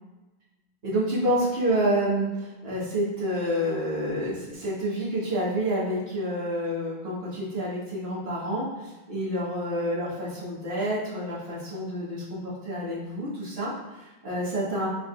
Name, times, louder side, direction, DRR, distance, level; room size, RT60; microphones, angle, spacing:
voice 1, 0.8-14.9, equal, 35° right, -7 dB, 1.3 m, -28 dB
6.4 x 3.6 x 2.3 m, 1.1 s
omnidirectional pair, 2.4 m